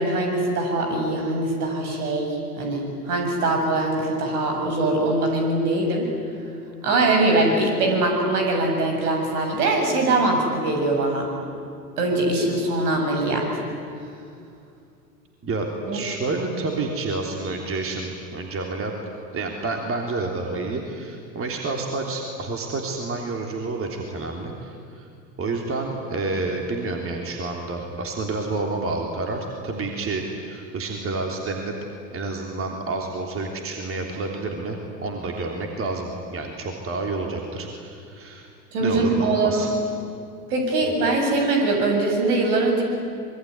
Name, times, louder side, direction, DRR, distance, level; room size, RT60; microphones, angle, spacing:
voice 1, 0.0-6.1 6.8-11.3 12.0-13.6 15.9-16.0 38.7-39.7 40.5-42.8, right 2 dB, 65° right, 2 dB, 7.4 m, -22 dB
voice 2, 15.9-18.9 19.3-25.1 25.4-31.7 32.1-38.5 38.8-39.7, right 3 dB, 25° right, 1 dB, 3.4 m, -29 dB
26.0 x 22.5 x 9.6 m, 2.4 s
figure-of-eight pair, 85°, 49 cm